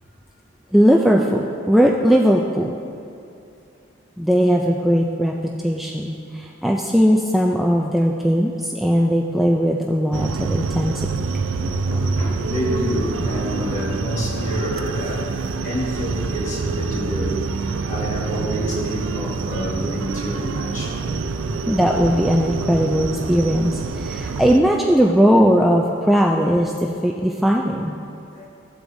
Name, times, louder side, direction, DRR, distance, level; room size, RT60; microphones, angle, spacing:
voice 1, 0.7-2.7 4.2-11.1 21.7-28.0, equal, ahead, -1 dB, 0.3 m, -18 dB
sound 1, 10.1-24.6, right 4 dB, 85° right, 0.4 m, -26 dB
voice 2, 11.6-21.5 26.3-26.4 28.3-28.5, equal, 40° left, -4 dB, 1.7 m, -28 dB
14.0 x 8.0 x 2.7 m, 2.6 s
head